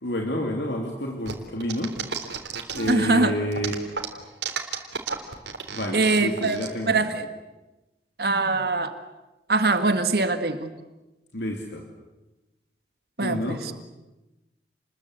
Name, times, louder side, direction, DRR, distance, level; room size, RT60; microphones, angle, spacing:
voice 1, 0.0-1.9 2.7-3.8 5.7-7.0 11.3-11.8 13.2-13.6, left 1 dB, 80° left, 1 dB, 3.2 m, -29 dB
sound 1, 1.3-3.1 3.5-6.7, right 6 dB, 85° right, 3.6 m, -32 dB
voice 2, 2.9-3.3 5.9-6.6 6.9-7.3 8.2-8.9 9.5-10.7 13.2-13.7, right 3 dB, 60° right, 8 dB, 1.9 m, -22 dB
30.0 x 21.5 x 8.3 m, 1.0 s
head